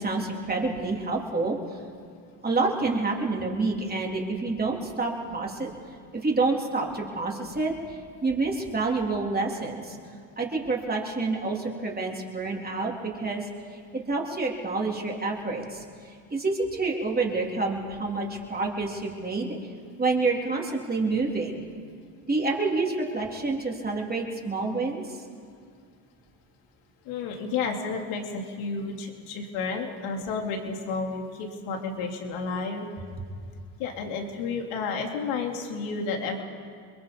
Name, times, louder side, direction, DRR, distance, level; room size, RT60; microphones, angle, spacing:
voice 1, 0.0-1.6 2.4-5.7 6.1-10.0 10.4-19.6 20.0-21.6 22.3-25.2, right 3 dB, 20° right, -1 dB, 3.5 m, -28 dB
voice 2, 27.0-32.9 33.8-36.4, left 4 dB, 75° left, 2 dB, 3.3 m, -31 dB
28.0 x 22.0 x 5.4 m, 2.2 s
supercardioid pair, 105°, 49 cm